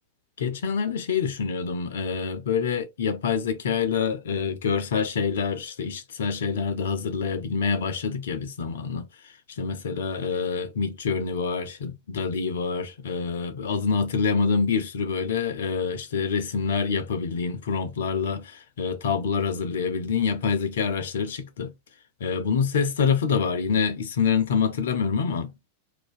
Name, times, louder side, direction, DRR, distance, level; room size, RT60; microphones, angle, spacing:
voice 1, 0.4-9.0 9.6-21.7 22.2-25.5, left 6 dB, 60° left, 0.4 m, -26 dB
2.5 x 2.1 x 2.4 m
figure-of-eight pair, 90°, 0 cm